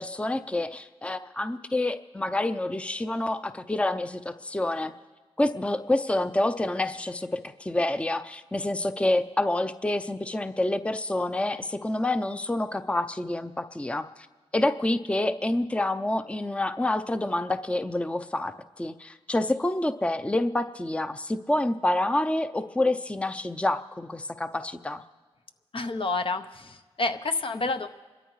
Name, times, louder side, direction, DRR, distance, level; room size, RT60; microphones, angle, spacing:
voice 1, 0.0-4.9 5.4-14.1 14.5-25.0, left 1 dB, 10° left, 10 dB, 0.5 m, -28 dB
voice 2, 25.7-27.9, left 3 dB, 55° left, 8 dB, 0.8 m, -29 dB
27.5 x 13.0 x 3.2 m, 1.3 s
cardioid pair, 50°, 11 cm